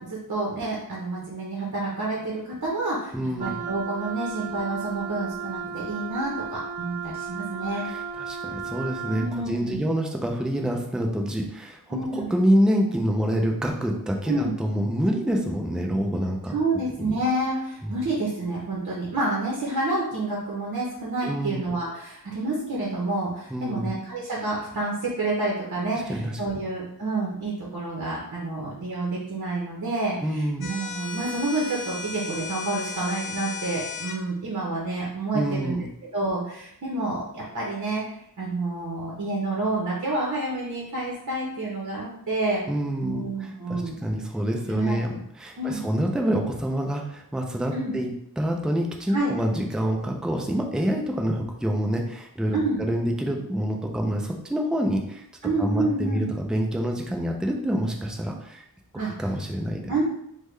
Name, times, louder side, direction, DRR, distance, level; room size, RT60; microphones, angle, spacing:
voice 1, 0.0-3.1 3.4-7.9 9.1-9.9 11.9-12.3 14.3-14.6 16.5-35.8 36.1-38.0 38.4-42.7 43.0-43.9 44.7-45.0 45.6-45.8 47.7-47.9 49.1-49.3 52.5-52.8 55.4-56.3 59.0-59.1 59.9-60.0, right 2 dB, 50° right, -4 dB, 0.8 m, -29 dB
voice 2, 3.1-3.5 7.9-16.5 17.0-17.1 17.8-17.9 21.2-21.7 23.5-23.9 26.1-26.4 30.2-30.7 35.3-35.9 42.7-48.1 48.4-58.6 59.2-59.9, equal, ahead, 1 dB, 0.4 m, -27 dB
Wind instrument woodwind instrument, 3.4-9.4, right 6 dB, 85° right, 0.7 m, -34 dB
sound 1, 30.6-34.2, left 4 dB, 75° left, 0.5 m, -35 dB
3.5 x 2.2 x 3.1 m, 0.73 s
wide cardioid pair, 100°, 37 cm